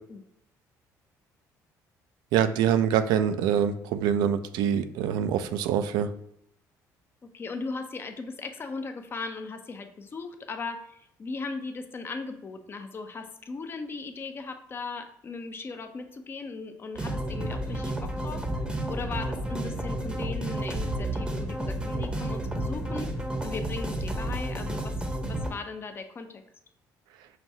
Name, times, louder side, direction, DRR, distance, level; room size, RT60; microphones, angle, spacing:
voice 1, 2.3-6.1, right 9 dB, 80° right, 10 dB, 0.3 m, -25 dB
voice 2, 7.3-18.4 18.9-23.1 23.4-25.0 25.3-26.4, left 4 dB, 30° left, 7 dB, 0.5 m, -38 dB
sound 1, 17.0-25.5, right 1 dB, 15° right, 0.7 m, -31 dB
5.7 x 2.3 x 2.7 m, 0.76 s
cardioid pair, 100°, 7 cm